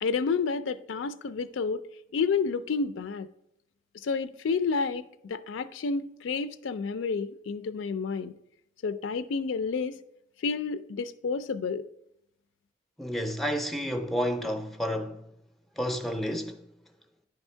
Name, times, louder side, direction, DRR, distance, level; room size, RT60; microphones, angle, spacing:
voice 1, 0.0-1.8 2.1-3.3 4.0-8.3 8.8-10.0 10.4-11.8, left 5 dB, 85° left, 0.4 m, -30 dB
voice 2, 13.0-15.2 15.8-16.6, equal, ahead, 0.4 m, -30 dB
10.0 x 3.5 x 4.4 m
head